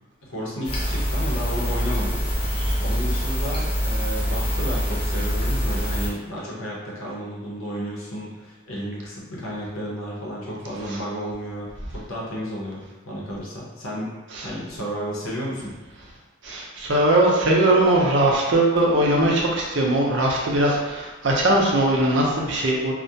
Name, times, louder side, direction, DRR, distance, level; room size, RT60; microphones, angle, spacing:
voice 1, 0.2-2.2 2.8-11.7 11.9-14.1 14.4-15.7, equal, 80° left, -5 dB, 0.7 m, -32 dB
sound 1, 0.6-6.1, equal, 25° left, 0.3 m, -25 dB
voice 2, 16.4-22.9, right 1 dB, 60° right, -2 dB, 0.5 m, -20 dB
2.3 x 2.1 x 2.7 m, 1.3 s
head